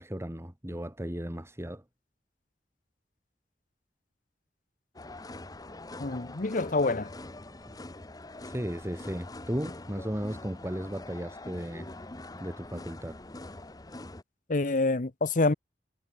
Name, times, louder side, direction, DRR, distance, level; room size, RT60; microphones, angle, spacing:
voice 1, 0.0-1.8 8.4-11.9 12.4-13.2, equal, 15° right, 2.3 m, -35 dB
sound 1, 4.9-14.2, left 2 dB, 20° left, 1.0 m, -44 dB
voice 2, 6.0-7.1 14.5-15.5, left 3 dB, 50° left, 0.9 m, -27 dB
head